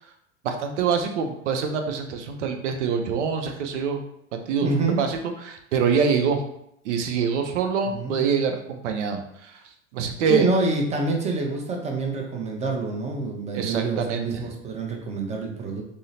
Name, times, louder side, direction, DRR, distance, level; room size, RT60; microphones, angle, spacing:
voice 1, 0.4-4.0 4.5-4.7 5.0-6.4 6.8-9.6 9.9-10.5 13.5-14.5, right 6 dB, 70° right, 5 dB, 0.6 m, -25 dB
voice 2, 4.6-5.0 7.9-8.2 10.3-15.8, right 3 dB, 20° right, 1 dB, 0.6 m, -27 dB
sound 1, 10.2-11.8 12.1-12.2, left 4 dB, 50° right, 1.3 m, -45 dB
3.6 x 2.1 x 2.7 m, 0.76 s
hypercardioid pair, 95°, 38 cm